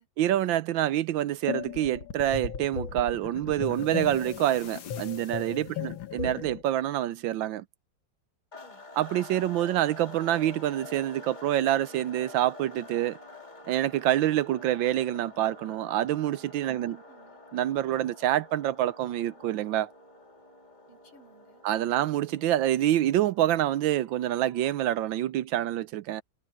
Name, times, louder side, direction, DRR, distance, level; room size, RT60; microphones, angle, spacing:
voice 1, 0.2-7.6 8.9-13.2 13.7-17.0 17.5-19.9 21.6-26.2, right 12 dB, 75° right, 1.3 m, -27 dB
sound 1, 1.5-6.6, left 9 dB, 75° left, 2.1 m, -36 dB
voice 2, 5.7-6.1 8.6-8.9 16.7-17.4 20.9-21.6, right 1 dB, 90° left, 4.9 m, -57 dB
sound 2, 8.5-25.2, left 3 dB, 20° left, 2.1 m, -49 dB
omnidirectional pair, 2.2 m